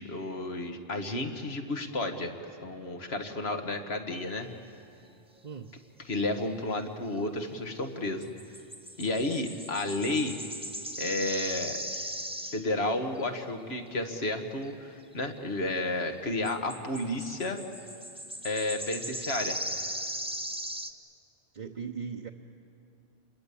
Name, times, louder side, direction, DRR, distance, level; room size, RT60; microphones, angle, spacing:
voice 1, 0.0-2.4 2.6-4.5 6.1-8.3 9.0-10.4 11.0-11.8 12.5-17.6 18.4-19.6, left 2 dB, 80° left, 5 dB, 2.0 m, -32 dB
sound 1, 4.1-4.3 8.2-12.9 13.2-13.3 14.3-14.4 15.8-15.9 16.4-20.9, equal, 5° right, 1.2 m, -38 dB
voice 2, 21.5-22.3, right 6 dB, 50° right, 2 dB, 1.0 m, -38 dB
29.0 x 22.0 x 8.5 m, 2.4 s
omnidirectional pair, 1.1 m